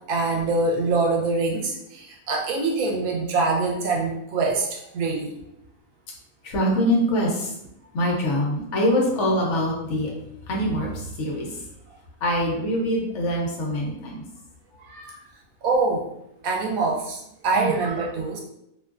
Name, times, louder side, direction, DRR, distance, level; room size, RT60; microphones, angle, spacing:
voice 1, 0.1-5.4 14.8-15.1 15.6-16.1 16.4-18.4, right 3 dB, 85° right, -1 dB, 1.0 m, -24 dB
voice 2, 6.4-7.5 7.9-10.1 10.5-10.9 11.2-11.5 12.2-14.2 17.5-17.7, equal, 65° left, -2 dB, 0.8 m, -24 dB
2.5 x 2.2 x 2.3 m, 0.80 s
omnidirectional pair, 1.5 m